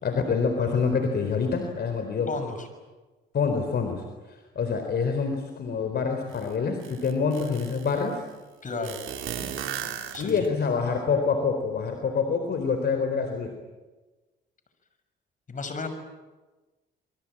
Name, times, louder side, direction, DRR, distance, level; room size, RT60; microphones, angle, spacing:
voice 1, 0.0-2.3 3.3-8.2 10.2-13.5, left 5 dB, 55° left, 5 dB, 4.2 m, -26 dB
voice 2, 2.3-2.7 8.6-9.0 10.1-10.5 15.5-15.9, left 4 dB, 40° left, 8 dB, 6.4 m, -33 dB
sound 1, 6.3-6.4 6.8-7.9 8.8-10.7, right 9 dB, 75° right, 3.6 m, -35 dB
28.0 x 23.0 x 8.9 m, 1.2 s
cardioid pair, 90°, 20 cm